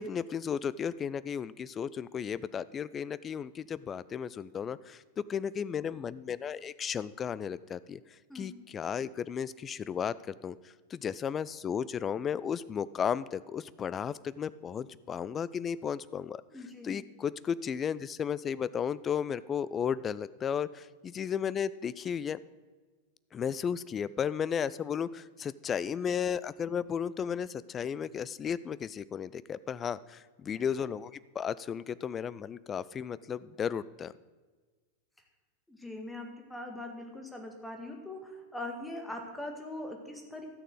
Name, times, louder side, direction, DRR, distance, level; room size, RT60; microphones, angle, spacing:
voice 1, 0.0-8.0 8.3-10.6 10.9-16.4 16.8-22.4 23.3-34.1, left 7 dB, 25° left, 18 dB, 0.4 m, -34 dB
voice 2, 16.5-17.0 35.7-40.4, left 1 dB, 5° left, 3 dB, 2.0 m, -41 dB
13.0 x 6.6 x 7.7 m, 1.4 s
figure-of-eight pair, 90°, 0 cm